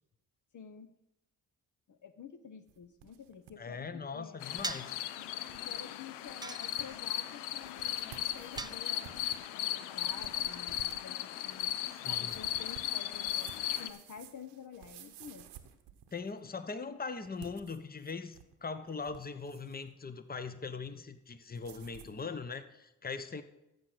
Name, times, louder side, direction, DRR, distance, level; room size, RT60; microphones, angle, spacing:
voice 1, 0.5-0.9 1.9-4.4 5.5-9.2 9.5-11.7 12.1-15.5, left 7 dB, 50° left, 9 dB, 0.8 m, -50 dB
sound 1, 2.7-3.5 3.9-4.0 4.5-4.8 5.2-5.3 5.5-5.8 6.3-6.4 6.6-7.1 7.6-16.4 17.3-18.5 18.9-19.8 21.5-22.2, right 10 dB, 80° right, 1.0 m, -54 dB
voice 2, 3.6-5.0 12.0-12.3 16.1-23.4, left 4 dB, 20° left, 12 dB, 1.0 m, -41 dB
sound 2, 4.4-13.9, left 12 dB, 90° left, 0.6 m, -37 dB
sound 3, 4.6-5.0 6.4-7.1 8.6-9.3, right 3 dB, 10° right, 0.5 m, -41 dB
14.0 x 5.2 x 6.1 m, 0.90 s
supercardioid pair, 50°, 40 cm